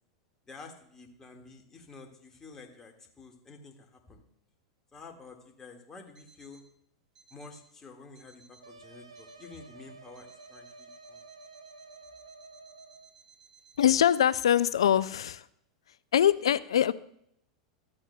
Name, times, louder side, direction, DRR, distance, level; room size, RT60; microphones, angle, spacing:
voice 1, 0.5-4.2 4.9-6.6 7.3-8.4 8.8-11.2, left 4 dB, 20° left, 2 dB, 1.7 m, -50 dB
Alarm, 6.1-6.7 7.1-7.7 8.1-8.7 9.1-9.7 10.1-14.3, right 6 dB, 25° right, 1.3 m, -60 dB
sound 1, 8.6-13.1, right 3 dB, 90° right, 0.8 m, -51 dB
voice 2, 13.8-15.5 16.1-16.9, left 10 dB, 75° left, 18 dB, 0.3 m, -23 dB
14.0 x 8.6 x 2.2 m, 0.73 s
hypercardioid pair, 95°, 3 cm